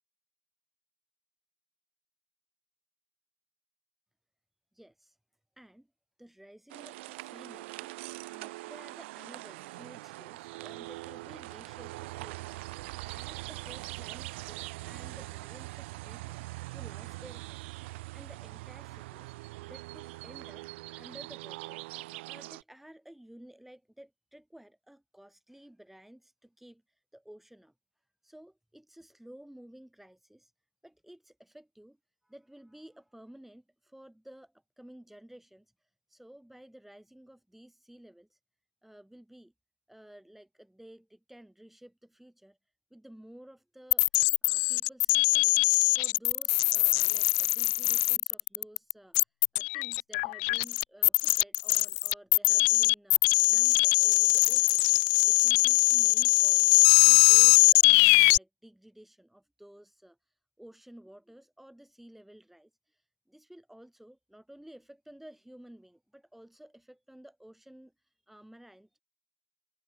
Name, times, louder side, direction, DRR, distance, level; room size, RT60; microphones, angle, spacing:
voice 1, 4.7-5.2 5.6-5.9 6.2-7.9 8.3-19.3 19.6-20.6 21.0-21.9 22.2-27.7 28.2-30.5 30.8-32.0 32.2-38.4 38.8-39.5 39.9-42.6 42.9-44.1 44.4-45.5 45.9-49.2 49.5-54.9 55.2-56.8 57.0-69.0, right 1 dB, 5° right, 5.9 m, -53 dB
sound 1, 6.7-22.6, right 21 dB, 75° right, 0.7 m, -42 dB
sound 2, 43.9-58.4, left 40 dB or more, 65° left, 0.3 m, -22 dB
hypercardioid pair, 95°, 6 cm